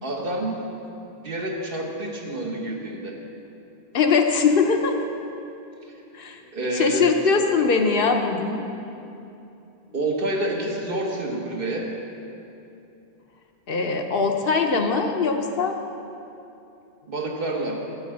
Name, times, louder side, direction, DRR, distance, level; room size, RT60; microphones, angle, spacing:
voice 1, 0.0-0.6 1.2-3.2 6.5-7.1 9.9-11.9 17.1-17.8, right 1 dB, 60° right, -1 dB, 1.3 m, -28 dB
voice 2, 3.9-5.0 6.1-8.6 13.7-15.8, left 5 dB, 65° left, 4 dB, 0.8 m, -21 dB
11.5 x 4.6 x 7.5 m, 2.8 s
omnidirectional pair, 1.1 m